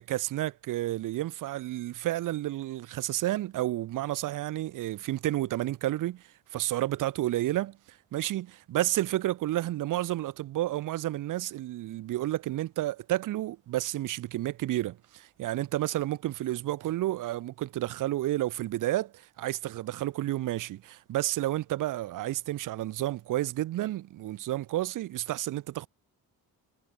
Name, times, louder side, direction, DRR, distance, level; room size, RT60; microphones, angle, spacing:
voice 1, 0.0-25.9, right 15 dB, 55° right, 0.5 m, -31 dB
wide cardioid pair, 180°, 38 cm